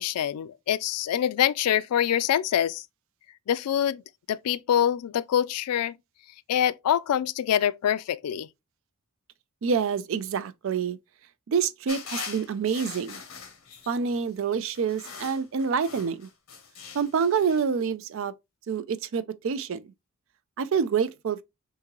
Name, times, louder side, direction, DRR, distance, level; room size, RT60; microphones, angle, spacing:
voice 1, 0.0-2.8 3.5-4.0 4.3-6.0 6.5-8.5, left 10 dB, 90° left, 0.3 m, -25 dB
voice 2, 9.6-11.0 11.5-13.2 13.9-16.3 16.9-18.3 18.7-19.9 20.6-21.4, right 6 dB, 60° right, 0.3 m, -27 dB
sound 1, 11.9-14.2 14.7-17.6, left 6 dB, 65° left, 0.9 m, -41 dB
3.7 x 2.7 x 3.0 m
head